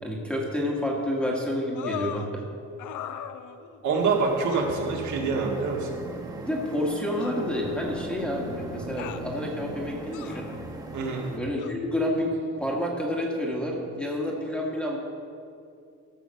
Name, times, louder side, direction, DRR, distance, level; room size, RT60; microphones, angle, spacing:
voice 1, 0.0-2.4 6.4-10.5 11.3-15.0, left 1 dB, 5° left, -2 dB, 1.4 m, -29 dB
sound 1, 1.7-2.3 2.8-3.8 4.5-4.7 5.8-5.9 7.2-8.1 9.0-9.3 10.1-10.6 11.6-11.7, left 9 dB, 80° left, 0.7 m, -38 dB
voice 2, 3.8-5.9 10.9-11.3, right 4 dB, 75° right, -1 dB, 2.0 m, -26 dB
sound 2, 4.0-11.4, right 2 dB, 10° right, 0.9 m, -39 dB
14.0 x 5.6 x 6.9 m, 2.5 s
cardioid pair, 170°, 30 cm